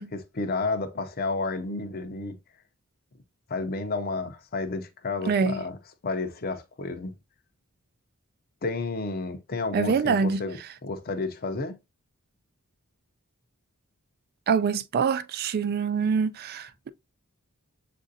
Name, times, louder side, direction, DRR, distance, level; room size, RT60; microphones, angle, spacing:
voice 1, 0.0-2.3 3.5-5.8 6.0-7.2 8.6-11.8, left 3 dB, 45° left, 0.6 m, -31 dB
voice 2, 5.3-5.6 9.7-10.4 14.5-16.9, right 5 dB, 45° right, 0.3 m, -25 dB
7.3 x 2.5 x 2.7 m
head